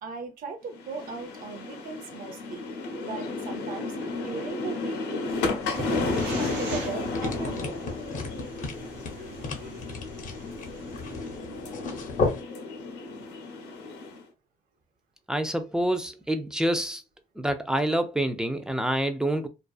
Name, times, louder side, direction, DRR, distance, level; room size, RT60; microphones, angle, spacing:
voice 1, 0.0-2.7 3.0-5.3 5.7-7.8 8.1-8.3 9.2-9.3 9.6-9.8, right 5 dB, 55° right, 0.7 m, -38 dB
sound 1, 0.7-14.2, left 3 dB, 85° left, 0.8 m, -33 dB
sound 2, 5.3-12.4, left 3 dB, 50° left, 0.7 m, -35 dB
sound 3, 5.6-11.4, right 4 dB, 90° right, 0.8 m, -44 dB
voice 2, 15.3-17.0 17.4-19.5, right 1 dB, 5° right, 0.4 m, -27 dB
2.6 x 2.3 x 2.3 m
cardioid pair, 110°, 17 cm